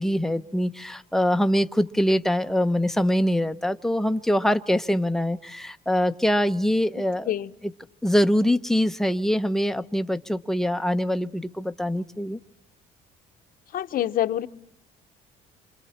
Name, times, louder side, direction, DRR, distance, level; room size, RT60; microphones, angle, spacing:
voice 1, 0.0-7.3 8.0-12.4, equal, ahead, 8 dB, 0.8 m, -23 dB
voice 2, 7.0-7.5 13.7-14.5, left 12 dB, 55° left, 10 dB, 0.9 m, -27 dB
27.5 x 26.5 x 4.3 m, 0.79 s
cardioid pair, 110°, 17 cm